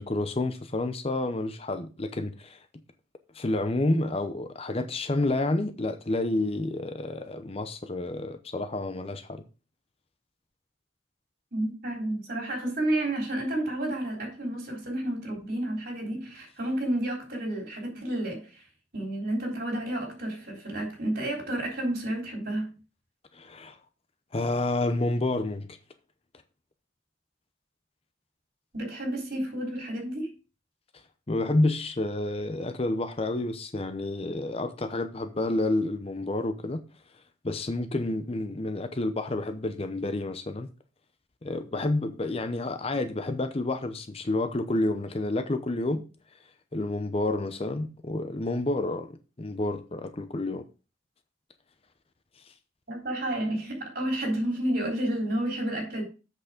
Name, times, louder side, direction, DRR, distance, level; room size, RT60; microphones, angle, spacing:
voice 1, 0.0-2.7 3.3-9.4 23.3-23.8 24.3-25.8 31.3-36.8 37.4-40.7 41.4-46.0 46.7-49.1 49.4-50.6 52.5-52.6, left 2 dB, 30° left, 0.6 m, -29 dB
voice 2, 11.5-18.6 18.9-22.8 28.7-30.3 52.9-56.0, right 1 dB, 50° right, 3.7 m, -31 dB
7.9 x 6.3 x 5.0 m
head